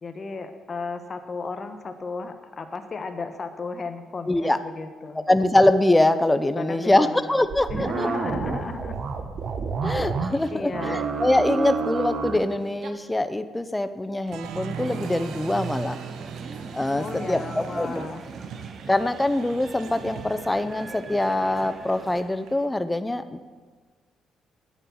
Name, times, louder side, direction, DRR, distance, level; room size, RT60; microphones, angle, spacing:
voice 1, 0.0-5.2 6.5-9.0 10.5-11.0 17.0-18.2, left 4 dB, 40° left, 8 dB, 1.1 m, -34 dB
voice 2, 4.3-4.6 5.3-8.1 9.8-16.0 16.7-18.1 18.9-23.5, left 1 dB, 10° left, 12 dB, 0.7 m, -23 dB
sound 1, 7.4-10.5 10.7-12.5 12.8-12.9, right 5 dB, 60° right, 1.2 m, -29 dB
Applause, 14.3-22.7, right 7 dB, 80° right, 0.8 m, -39 dB
sound 2, 14.7-22.2, right 3 dB, 35° right, 1.0 m, -41 dB
9.7 x 8.6 x 7.2 m, 1.4 s
cardioid pair, 90°, 0 cm